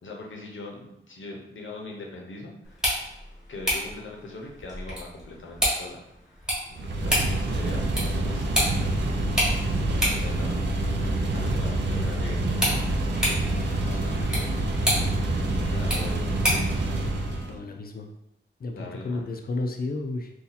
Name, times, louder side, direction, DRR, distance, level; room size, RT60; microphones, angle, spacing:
voice 1, 0.0-3.0 3.5-6.0 6.3-6.5 7.0-8.6 10.2-10.6 11.0-12.9 13.8-14.5 15.6-16.9 18.7-19.2, left 2 dB, 75° left, -1 dB, 0.8 m, -41 dB
sound 1, 2.6-16.8, equal, 5° right, 1.2 m, -31 dB
sound 2, 6.7-17.6, right 2 dB, 60° right, 0.5 m, -27 dB
Bowed string instrument, 13.1-17.8, equal, 40° right, 0.8 m, -48 dB
voice 2, 17.5-18.1 18.6-20.3, left 2 dB, 50° left, 4 dB, 0.5 m, -32 dB
2.7 x 2.4 x 4.0 m, 0.82 s
wide cardioid pair, 150°, 20 cm